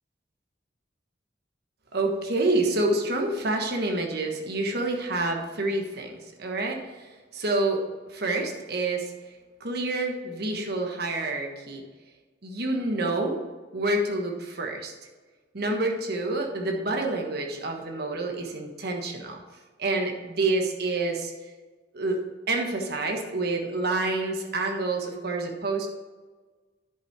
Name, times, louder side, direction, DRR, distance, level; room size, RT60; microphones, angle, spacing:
voice 1, 1.9-6.1 6.4-6.8 7.3-7.8 8.1-9.1 9.6-11.8 12.4-13.4 13.7-14.9 15.5-19.4 19.8-21.3 21.9-22.2 22.5-25.9, right 2 dB, 60° right, 2 dB, 1.3 m, -27 dB
10.0 x 5.7 x 4.7 m, 1.3 s
head